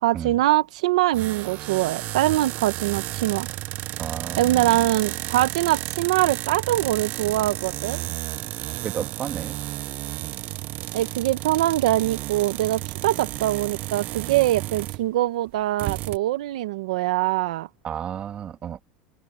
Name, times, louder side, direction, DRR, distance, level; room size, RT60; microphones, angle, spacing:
voice 1, 0.0-3.5 4.4-8.0 10.9-17.7, right 16 dB, 90° right, 1.3 m, -23 dB
sound 1, 1.1-15.1 15.5-15.6 15.8-16.2, right 17 dB, 50° right, 0.6 m, -32 dB
voice 2, 4.0-4.8 8.8-9.6 17.8-18.8, right 9 dB, 30° right, 2.3 m, -32 dB
supercardioid pair, 135°, 4 cm